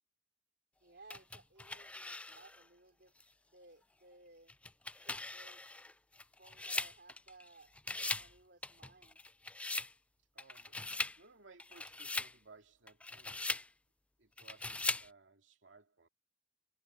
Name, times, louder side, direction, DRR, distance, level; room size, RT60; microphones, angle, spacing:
voice 1, 0.8-3.1 3.5-4.5 5.0-5.8 6.4-7.7 8.2-9.2, right 3 dB, 55° right, 4.5 m, -60 dB
sound 1, 1.1-2.6 3.2-3.3 4.5-7.5 7.8-8.3 8.6-9.9 10.4-11.2 11.6-12.3 12.9-13.7 14.4-15.1, left 2 dB, 5° left, 0.3 m, -40 dB
voice 2, 10.3-13.5 14.2-16.1, right 3 dB, 80° right, 2.6 m, -61 dB
head